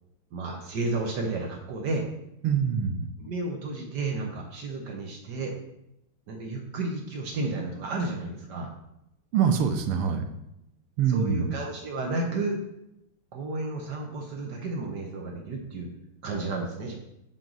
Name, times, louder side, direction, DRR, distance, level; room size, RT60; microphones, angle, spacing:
voice 1, 0.3-2.1 3.2-5.6 6.3-8.7 11.1-12.6 13.3-15.9 16.2-17.0, right 2 dB, 60° right, 1 dB, 1.3 m, -32 dB
voice 2, 2.4-3.1 9.3-10.3 11.0-11.5, right 7 dB, 85° right, 6 dB, 1.6 m, -24 dB
6.1 x 5.2 x 3.9 m, 0.83 s
omnidirectional pair, 2.4 m